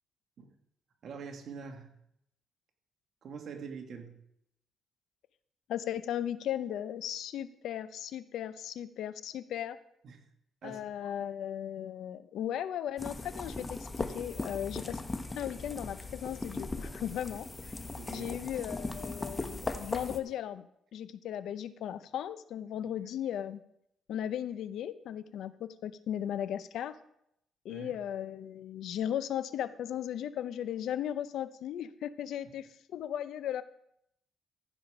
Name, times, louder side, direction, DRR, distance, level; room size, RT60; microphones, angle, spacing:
voice 1, 1.0-1.9 3.2-4.2 10.0-10.2 10.6-11.1 18.0-18.3 27.7-27.9, right 5 dB, 60° right, 3 dB, 1.9 m, -44 dB
voice 2, 5.7-9.8 10.6-15.0 15.3-17.7 18.1-23.6 24.1-27.0 27.6-33.6, left 10 dB, 75° left, 14 dB, 0.6 m, -37 dB
sound 1, 13.0-20.2, left 2 dB, 20° left, 1.1 m, -38 dB
14.5 x 5.0 x 6.1 m, 0.76 s
cardioid pair, 90°, 0 cm